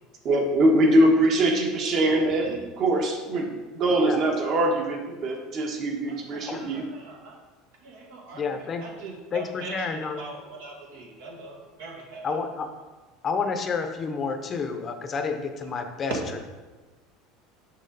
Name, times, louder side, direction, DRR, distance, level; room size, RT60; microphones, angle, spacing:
voice 1, 0.2-3.5 3.7-6.8, right 1 dB, 45° right, 2 dB, 1.3 m, -22 dB
voice 2, 6.1-7.4 7.8-12.3 16.2-16.3, right 2 dB, 80° right, 0 dB, 1.7 m, -41 dB
voice 3, 8.3-8.9 9.3-10.2 12.2-12.7 13.2-16.1, left 5 dB, 25° left, 6 dB, 0.6 m, -29 dB
6.4 x 5.7 x 4.0 m, 1.2 s
supercardioid pair, 140°, 0 cm